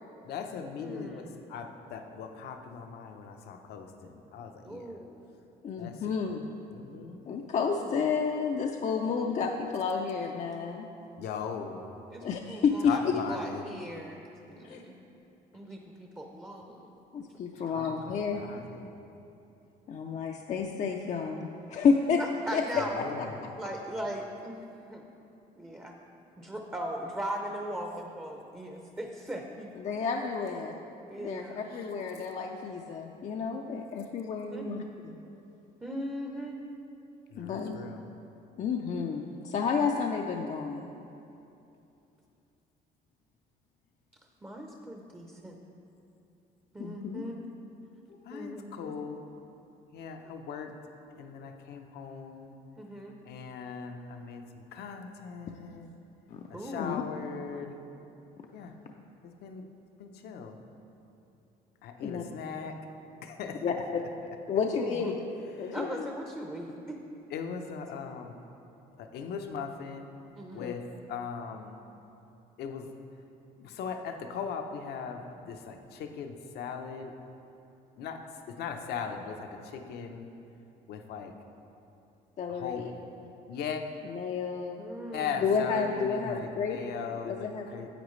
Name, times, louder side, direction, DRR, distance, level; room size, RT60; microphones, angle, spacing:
voice 1, 0.2-5.0 5.8-6.3 6.7-7.2 11.2-11.8 12.8-13.7 17.6-18.9 22.7-23.4 31.7-31.9 37.3-38.0 48.2-49.2 49.9-50.7 51.1-52.6 53.2-55.9 56.5-57.8 58.5-58.7 59.2-59.7 60.0-60.6 61.8-62.8 63.2-63.6 65.6-65.8 67.3-68.4 69.0-70.1 70.5-70.8 71.1-71.8 72.6-72.9 73.6-77.1 78.0-78.2 78.5-80.3 80.9-81.3 82.5-82.9 83.5-83.8 85.1-87.9, left 6 dB, 70° left, 5 dB, 0.7 m, -39 dB
voice 2, 0.8-1.3 4.6-5.2 7.7-7.9 9.2-9.3 12.1-13.0 13.3-14.9 15.5-17.0 22.2-23.0 23.6-25.0 25.5-26.0 26.4-29.7 31.1-31.6 34.5-34.6 35.8-36.6 44.4-45.6 46.7-47.4 48.3-48.9 52.8-53.2 56.5-57.0 64.8-65.1 65.7-67.0 70.4-70.7 84.8-85.5, right 1 dB, 10° right, 1 dB, 0.6 m, -39 dB
voice 3, 5.6-6.5 7.3-10.9 12.2-12.9 14.6-14.8 17.1-18.7 19.9-22.2 22.5-23.3 29.8-30.8 31.2-35.2 37.4-37.8 38.6-40.9 46.8-47.2 48.1-48.2 56.3-56.4 56.8-57.0 62.0-62.2 63.6-64.0 64.5-65.1 65.6-66.1 70.6-70.7 82.4-82.9 84.1-84.8 85.4-86.8 87.2-87.7, left 5 dB, 45° left, 2 dB, 0.5 m, -31 dB
10.0 x 8.0 x 3.2 m, 2.8 s
cardioid pair, 110°, 17 cm